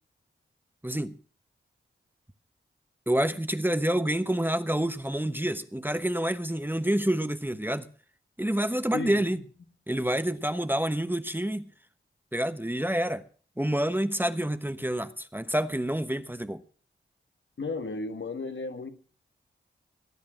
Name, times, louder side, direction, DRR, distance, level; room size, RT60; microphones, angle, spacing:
voice 1, 0.8-1.1 3.1-7.9 8.4-9.4 9.9-11.7 12.3-13.2 13.6-16.6, right 1 dB, 10° right, 1.1 m, -28 dB
voice 2, 8.9-9.2 17.6-18.9, left 3 dB, 60° left, 1.7 m, -34 dB
19.0 x 8.6 x 6.3 m
cardioid pair, 40°, 21 cm